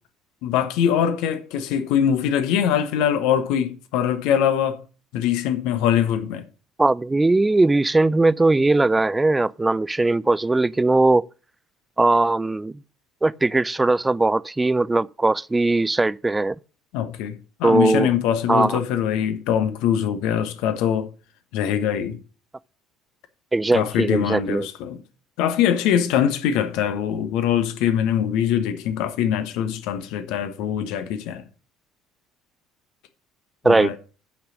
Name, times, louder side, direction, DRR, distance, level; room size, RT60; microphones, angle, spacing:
voice 1, 0.4-4.8 5.1-6.4 16.9-21.1 21.5-22.2 23.7-25.0 25.4-31.4 33.6-34.0, left 9 dB, 60° left, 1.2 m, -23 dB
voice 2, 6.8-11.2 12.0-12.7 13.2-16.6 17.6-18.1 18.5-18.8 23.5-24.7 33.6-34.0, right 2 dB, 15° right, 0.4 m, -19 dB
8.7 x 5.9 x 6.3 m
figure-of-eight pair, 55°, 0 cm